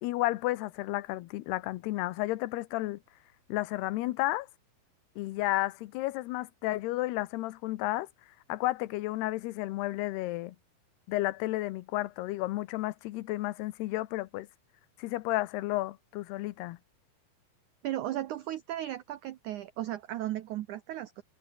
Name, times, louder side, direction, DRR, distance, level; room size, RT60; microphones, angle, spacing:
voice 1, 0.0-3.0 3.5-4.5 5.2-8.1 8.5-10.6 11.1-14.5 15.0-16.8, left 18 dB, 80° left, 2.9 m, -32 dB
voice 2, 17.8-21.2, right 13 dB, 85° right, 1.7 m, -35 dB
omnidirectional pair, 4.7 m